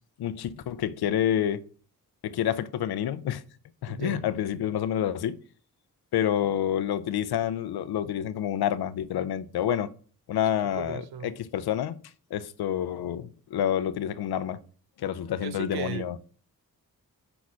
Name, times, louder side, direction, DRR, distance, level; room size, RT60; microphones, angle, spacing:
voice 1, 0.2-1.6 2.2-3.4 3.8-5.4 6.1-9.9 10.3-12.0 12.3-14.6 15.0-16.1, left 10 dB, 80° left, 0.6 m, -28 dB
voice 2, 3.9-4.2 10.6-11.3 15.4-16.2, right 8 dB, 90° right, 0.7 m, -37 dB
5.9 x 4.2 x 6.2 m
wide cardioid pair, 135°, 37 cm